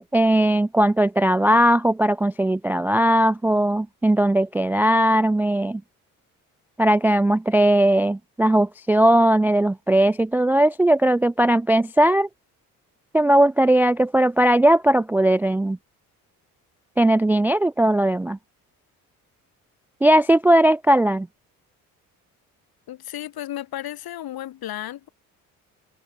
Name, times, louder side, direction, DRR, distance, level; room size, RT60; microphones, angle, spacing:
voice 1, 0.0-5.8 6.8-12.3 13.1-15.8 17.0-18.4 20.0-21.3, right 1 dB, 5° right, 0.3 m, -18 dB
voice 2, 22.9-25.1, left 12 dB, 55° left, 1.8 m, -33 dB
hypercardioid pair, 55°, 44 cm